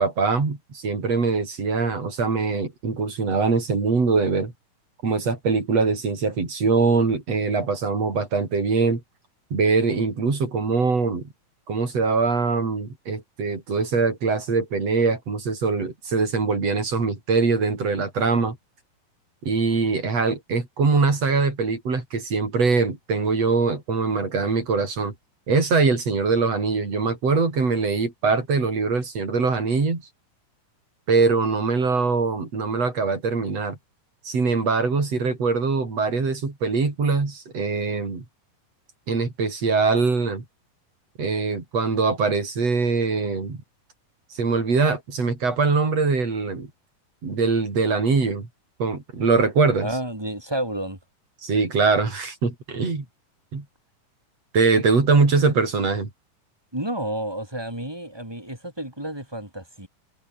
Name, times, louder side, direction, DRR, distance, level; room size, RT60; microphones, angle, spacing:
voice 1, 0.0-4.5 5.0-9.0 9.5-11.3 11.7-18.6 19.4-25.1 25.5-30.0 31.1-33.8 34.2-38.2 39.1-40.4 41.2-43.6 44.3-46.7 47.2-48.5 48.8-49.9 51.4-53.0 53.5-53.6 54.5-56.1, right 4 dB, 45° right, 6.4 m, -22 dB
voice 2, 49.8-51.0 56.7-59.9, right 1 dB, 5° right, 6.0 m, -30 dB
omnidirectional pair, 3.9 m